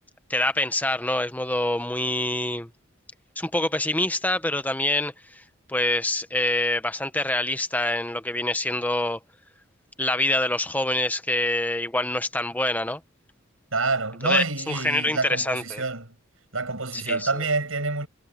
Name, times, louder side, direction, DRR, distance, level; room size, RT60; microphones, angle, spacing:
voice 1, 0.3-2.7 3.4-5.4 5.7-9.2 10.0-13.0 14.2-15.8 16.9-17.4, left 1 dB, 10° left, 1.1 m, -26 dB
voice 2, 13.7-16.1 16.5-18.1, right 3 dB, 85° right, 6.5 m, -27 dB
head